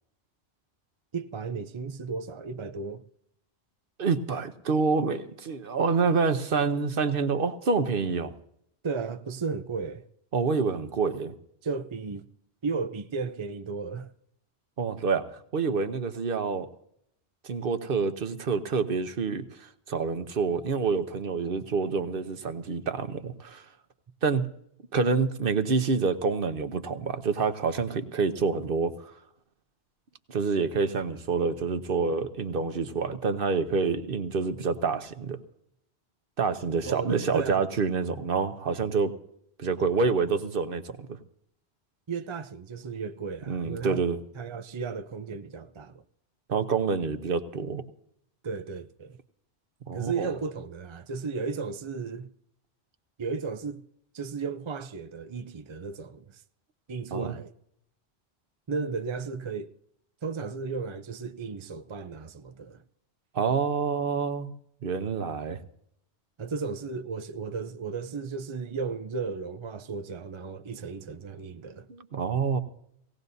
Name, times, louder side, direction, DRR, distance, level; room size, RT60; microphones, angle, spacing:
voice 1, 1.1-3.0 8.8-10.0 11.6-12.3 12.6-14.1 36.8-37.6 42.1-44.0 44.4-46.0 48.4-49.2 49.9-52.3 53.2-53.8 54.1-56.4 56.9-57.5 58.7-59.7 60.2-62.8 66.4-71.9, right 5 dB, 35° right, 0.5 m, -34 dB
voice 2, 4.0-8.3 10.3-11.3 14.8-16.7 17.4-23.6 24.2-24.5 24.9-28.9 30.3-35.4 36.4-39.1 39.6-41.2 43.5-44.2 46.5-47.8 49.9-50.3 57.1-57.3 63.3-64.5 64.8-65.6 71.9-72.6, right 5 dB, 55° right, 1.0 m, -27 dB
18.5 x 17.5 x 2.7 m
omnidirectional pair, 1.1 m